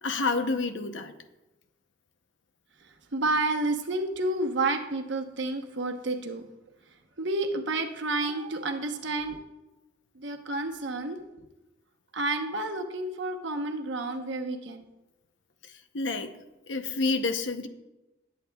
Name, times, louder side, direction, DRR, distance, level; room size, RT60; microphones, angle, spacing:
voice 1, 0.0-1.1 15.6-16.4 16.7-17.7, left 3 dB, 90° left, 8 dB, 0.8 m, -29 dB
voice 2, 3.1-6.4 7.2-9.4 10.1-11.2 12.1-14.8, right 2 dB, 80° right, 4 dB, 1.0 m, -30 dB
19.0 x 8.3 x 2.3 m, 1.0 s
head